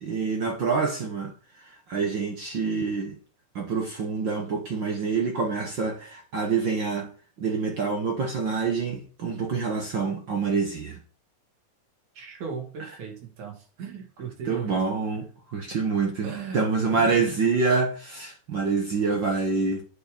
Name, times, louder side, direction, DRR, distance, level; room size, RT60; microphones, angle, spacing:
voice 1, 0.0-1.3 1.9-3.2 3.5-7.1 7.4-11.0 14.5-19.8, right 4 dB, 55° right, 1.4 m, -26 dB
voice 2, 12.1-14.8 16.2-17.4, right 6 dB, 80° right, 3.8 m, -38 dB
8.5 x 5.5 x 5.2 m
omnidirectional pair, 3.4 m